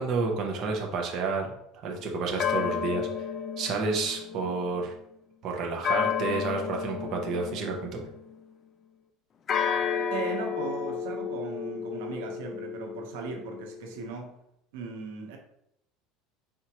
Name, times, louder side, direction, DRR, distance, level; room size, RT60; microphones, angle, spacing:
voice 1, 0.0-1.5 1.8-3.3 3.6-4.9 5.4-8.1, right 4 dB, 40° right, 1 dB, 0.7 m, -30 dB
sound 1, 1.9-4.8 5.8-8.3 9.5-14.1, left 7 dB, 25° left, 0.3 m, -32 dB
voice 2, 10.1-14.3 14.7-15.4, right 5 dB, 85° right, 2 dB, 0.9 m, -38 dB
4.4 x 3.6 x 2.9 m, 0.77 s
cardioid pair, 160°, 0 cm